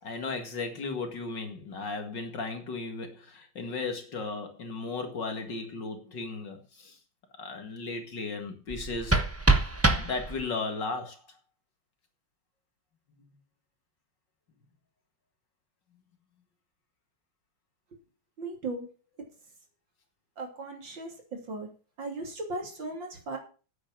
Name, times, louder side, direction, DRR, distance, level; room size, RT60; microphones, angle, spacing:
voice 1, 0.0-7.0 7.4-9.2 10.0-11.2, left 3 dB, 55° left, 5 dB, 2.6 m, -35 dB
sound 1, 8.7-10.7, right 2 dB, 15° right, 0.6 m, -26 dB
voice 2, 18.4-18.9 20.4-21.7 22.0-23.4, right 2 dB, 60° right, 3 dB, 3.6 m, -37 dB
9.6 x 8.6 x 7.2 m, 0.36 s
omnidirectional pair, 2.4 m